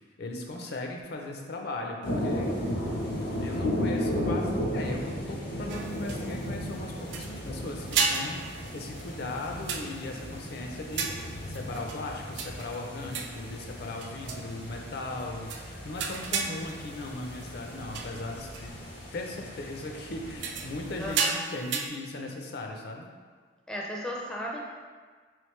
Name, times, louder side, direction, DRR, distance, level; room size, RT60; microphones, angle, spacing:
voice 1, 0.2-2.5 3.1-18.7 19.1-23.1, left 2 dB, 60° left, 2 dB, 0.4 m, -38 dB
sound 1, 2.0-21.2, equal, 90° left, 0.9 m, -35 dB
sound 2, 5.7-6.6 7.1-7.5 7.9-10.3 10.9-12.0 12.3-13.5 14.0-14.5 15.2-15.3 15.5-15.7 16.0-17.4 17.9-18.2 18.5-18.7 20.3-21.9, right 5 dB, 70° right, 0.3 m, -33 dB
voice 2, 21.0-21.3 23.7-24.6, equal, 5° left, -2 dB, 0.4 m, -35 dB
3.5 x 3.2 x 3.1 m, 1.5 s
head